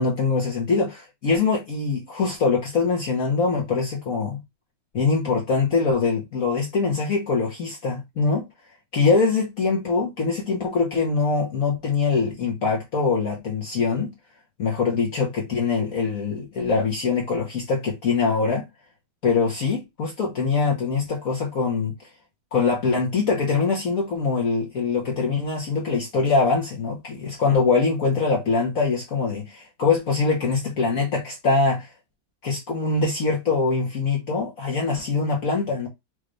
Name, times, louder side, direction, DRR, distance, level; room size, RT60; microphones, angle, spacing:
voice 1, 0.0-4.4 4.9-8.4 8.9-14.1 14.6-18.7 19.2-21.9 22.5-31.9 32.4-35.9, left 4 dB, 50° left, 1.3 m, -23 dB
5.1 x 2.5 x 3.2 m
omnidirectional pair, 2.1 m